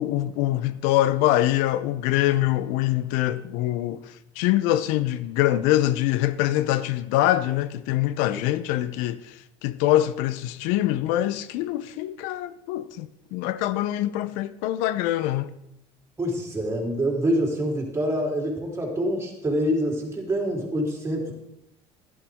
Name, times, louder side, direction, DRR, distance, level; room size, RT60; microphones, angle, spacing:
voice 1, 0.0-9.3 9.6-15.5, left 14 dB, 80° left, 0.6 m, -24 dB
voice 2, 16.2-21.3, equal, 20° right, 3.6 m, -26 dB
11.5 x 11.5 x 3.5 m
supercardioid pair, 95°, 13 cm